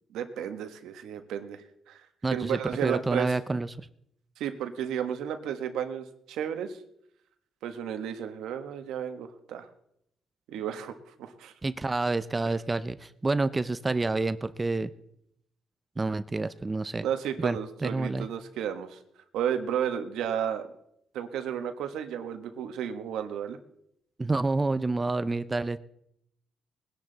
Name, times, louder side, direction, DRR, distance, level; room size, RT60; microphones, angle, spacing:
voice 1, 0.1-2.1 2.3-3.4 4.4-6.8 7.6-9.7 10.5-11.5 12.4-12.5 17.0-19.0 19.3-20.7 21.1-23.6, right 9 dB, 85° right, 8 dB, 1.3 m, -33 dB
voice 2, 2.2-3.9 11.6-14.9 16.0-17.0 17.4-18.3 24.2-25.8, right 3 dB, 25° right, 14 dB, 0.6 m, -28 dB
20.5 x 10.5 x 4.0 m, 0.75 s
cardioid pair, 90°, 0 cm